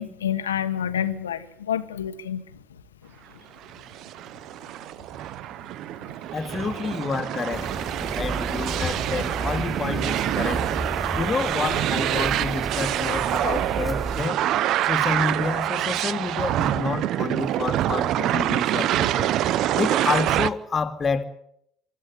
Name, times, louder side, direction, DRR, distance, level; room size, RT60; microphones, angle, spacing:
voice 1, 0.0-2.6 6.1-6.2, left 9 dB, 90° left, 11 dB, 1.4 m, -28 dB
sound 1, 3.7-20.5, right 12 dB, 60° right, 0.8 m, -26 dB
voice 2, 6.3-7.7 8.1-10.7 11.2-14.4 14.8-19.3 19.8-21.2, left 4 dB, 30° left, 8 dB, 2.5 m, -29 dB
sound 2, 7.5-14.2, right 2 dB, 5° right, 1.4 m, -33 dB
24.5 x 13.0 x 9.8 m, 0.72 s
hypercardioid pair, 70°, 0 cm